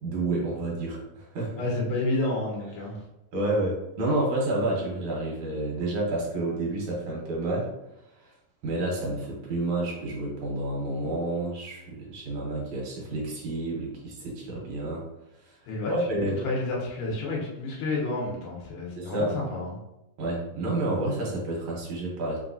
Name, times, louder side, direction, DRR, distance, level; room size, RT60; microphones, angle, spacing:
voice 1, 0.0-1.6 3.3-7.7 8.2-8.3 8.6-15.0 15.4-15.6 15.9-16.4 19.0-19.4 20.2-22.4, right 2 dB, 70° right, -3 dB, 2.2 m, -29 dB
voice 2, 1.6-3.0 15.7-19.7, left 2 dB, 85° left, -3 dB, 2.7 m, -30 dB
5.5 x 2.9 x 2.7 m, 0.90 s
omnidirectional pair, 3.7 m